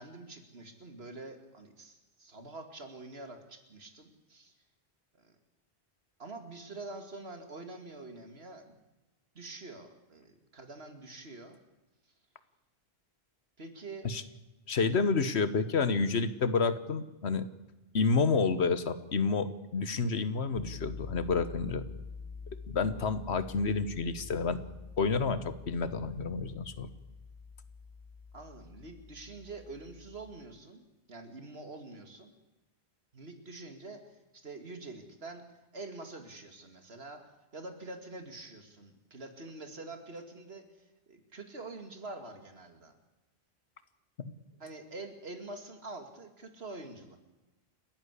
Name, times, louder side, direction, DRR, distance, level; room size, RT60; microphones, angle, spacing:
voice 1, 0.0-4.5 5.2-5.3 6.2-8.7 9.3-11.6 13.6-14.1 28.3-32.3 33.1-34.0 34.3-35.4 35.7-37.2 37.5-40.6 41.1-42.9 44.6-47.2, right 2 dB, 75° right, 7 dB, 2.6 m, -46 dB
voice 2, 14.7-17.4 17.9-21.8 22.7-24.6 25.0-26.9 44.2-44.3, left 4 dB, 85° left, 13 dB, 1.5 m, -29 dB
sound 1, 20.5-30.4, left 4 dB, 20° left, 2.5 m, -46 dB
29.5 x 10.5 x 8.3 m, 1.1 s
omnidirectional pair, 1.1 m